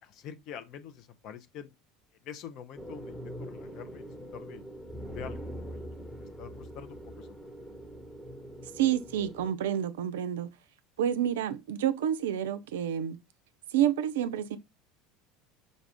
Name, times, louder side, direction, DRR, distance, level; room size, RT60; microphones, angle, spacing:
voice 1, 0.0-1.7 2.2-4.6 5.1-7.5, left 8 dB, 50° left, 0.6 m, -46 dB
sound 1, 2.8-9.5, equal, 10° left, 1.0 m, -43 dB
voice 2, 8.8-10.5 11.0-13.2 13.7-14.6, right 10 dB, 70° right, 0.4 m, -29 dB
5.2 x 2.4 x 3.3 m
figure-of-eight pair, 70°, 0 cm